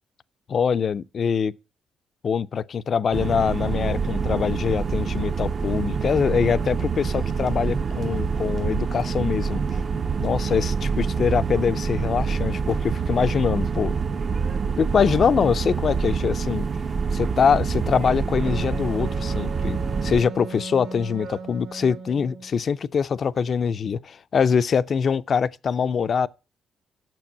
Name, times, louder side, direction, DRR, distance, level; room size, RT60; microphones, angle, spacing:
voice 1, 0.5-1.5 2.2-9.6 10.2-13.9 14.8-16.7 17.1-26.3, left 6 dB, 50° left, 0.4 m, -23 dB
sound 1, 3.1-20.2, right 5 dB, 40° right, 0.5 m, -26 dB
sound 2, 7.0-12.1, right 3 dB, 60° right, 1.1 m, -42 dB
Wind instrument woodwind instrument, 18.4-22.5, right 4 dB, 85° right, 1.5 m, -37 dB
6.8 x 6.1 x 7.1 m
cardioid pair, 90°, 0 cm